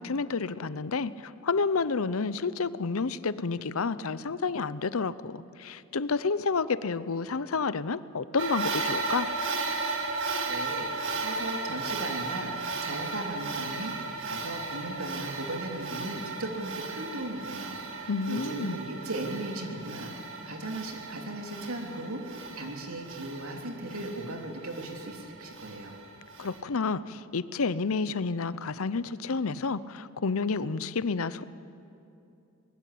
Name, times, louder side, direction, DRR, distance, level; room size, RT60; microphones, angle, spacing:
voice 1, 0.0-9.3 18.1-18.8 26.4-31.4, left 4 dB, 70° left, 16 dB, 0.7 m, -30 dB
sound 1, 8.4-26.6, right 3 dB, 65° right, 2.2 m, -35 dB
voice 2, 10.4-10.9 11.2-13.9 14.2-20.1 20.4-25.9, right 1 dB, 90° right, 2 dB, 3.2 m, -37 dB
23.0 x 20.5 x 8.5 m, 2.6 s
head